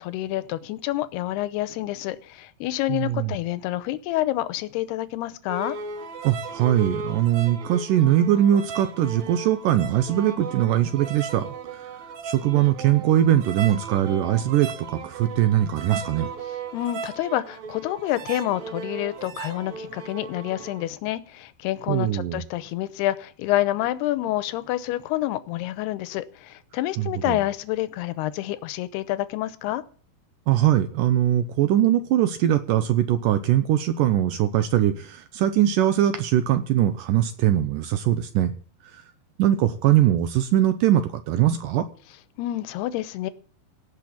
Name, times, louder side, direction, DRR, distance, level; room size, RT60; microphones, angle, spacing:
voice 1, 0.0-5.8 16.7-29.8 42.4-43.3, left 15 dB, 85° left, 2.9 m, -28 dB
voice 2, 2.9-3.4 6.2-11.9 12.2-16.3 21.9-22.4 27.0-27.4 30.5-38.5 38.9-39.0 39.4-41.9, right 12 dB, 75° right, 2.1 m, -21 dB
sound 1, 5.5-20.9, right 5 dB, 60° right, 2.2 m, -36 dB
17.0 x 6.3 x 8.6 m
omnidirectional pair, 4.5 m